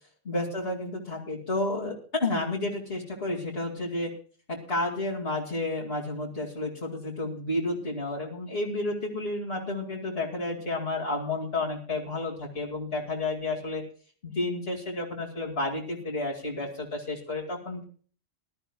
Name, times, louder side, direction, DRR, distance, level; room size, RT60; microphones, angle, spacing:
voice 1, 0.3-4.1 4.5-13.8 14.2-17.8, left 2 dB, 65° left, -3 dB, 2.5 m, -31 dB
20.5 x 12.5 x 2.3 m, 0.43 s
omnidirectional pair, 1.1 m